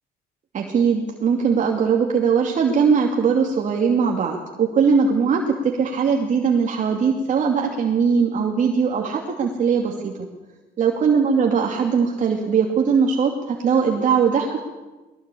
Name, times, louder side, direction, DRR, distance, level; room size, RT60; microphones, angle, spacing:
voice 1, 0.5-10.3 10.8-14.6, right 6 dB, 45° right, 1 dB, 2.6 m, -20 dB
21.5 x 18.0 x 8.5 m, 1.2 s
cardioid pair, 110°, 17 cm